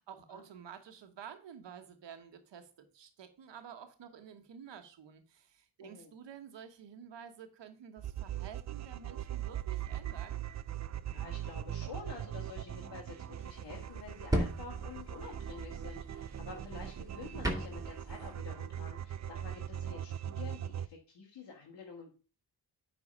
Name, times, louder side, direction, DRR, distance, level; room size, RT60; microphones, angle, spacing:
voice 1, 0.0-10.4, right 8 dB, 80° right, 7 dB, 1.4 m, -51 dB
sound 1, 8.0-20.9, right 10 dB, 40° right, 0.6 m, -41 dB
voice 2, 11.1-22.1, left 4 dB, 70° left, -3 dB, 2.0 m, -49 dB
sound 2, 13.4-18.3, right 1 dB, 10° right, 2.5 m, -38 dB
9.9 x 4.1 x 5.4 m, 0.36 s
cardioid pair, 50°, 43 cm